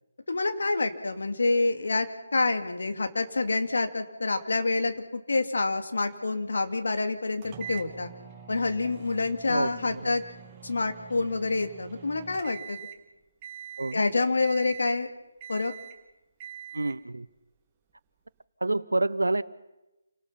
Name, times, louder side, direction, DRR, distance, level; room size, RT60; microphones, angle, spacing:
voice 1, 0.3-2.1 2.3-8.1 8.5-10.2 10.6-12.8 13.9-15.1 15.5-15.7, left 3 dB, 70° left, 7 dB, 2.3 m, -27 dB
sound 1, 7.4-13.1 13.4-14.0 14.4-15.1 15.4-16.0 16.4-17.0, right 9 dB, 20° right, 2.0 m, -44 dB
voice 2, 9.5-10.1 13.8-14.0 16.7-17.3 18.6-19.4, right 2 dB, 85° right, 17 dB, 1.0 m, -28 dB
28.5 x 18.5 x 5.7 m, 0.98 s
figure-of-eight pair, 155°, 0 cm